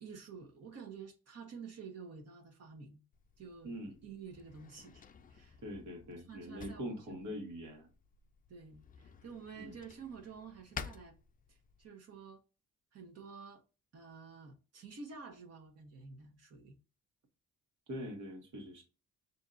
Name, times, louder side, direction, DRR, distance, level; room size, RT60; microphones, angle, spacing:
voice 1, 0.0-3.0 3.4-5.0 5.3-5.6 6.3-7.5 8.5-11.1 11.5-12.4 12.9-13.6 13.9-16.8, right 5 dB, 55° right, 1.1 m, -50 dB
Drawer open or close, 3.1-11.9, left 6 dB, 30° left, 0.4 m, -52 dB
voice 2, 3.6-4.0 5.6-7.9 9.6-9.8 17.9-18.8, equal, 75° right, 1.6 m, -43 dB
5.2 x 2.7 x 2.5 m
cardioid pair, 90°, 30 cm